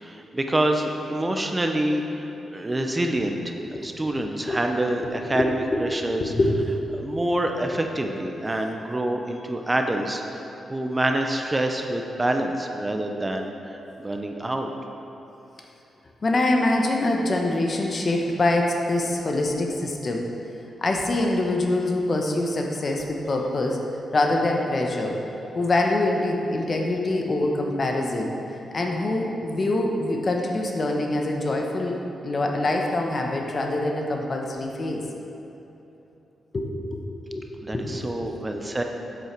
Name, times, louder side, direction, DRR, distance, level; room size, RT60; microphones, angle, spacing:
voice 1, 0.0-6.3 7.0-10.2 10.7-14.7 37.6-38.8, right 1 dB, 20° right, 4 dB, 0.8 m, -26 dB
voice 2, 5.0-5.8 6.2-7.2 16.2-20.3 20.8-23.8 24.1-25.2 25.5-28.4 28.7-35.0 36.5-37.4 37.7-38.0 38.2-38.3, left 2 dB, 45° left, 1 dB, 1.1 m, -25 dB
7.9 x 7.8 x 4.6 m, 3.0 s
cardioid pair, 60°, 0 cm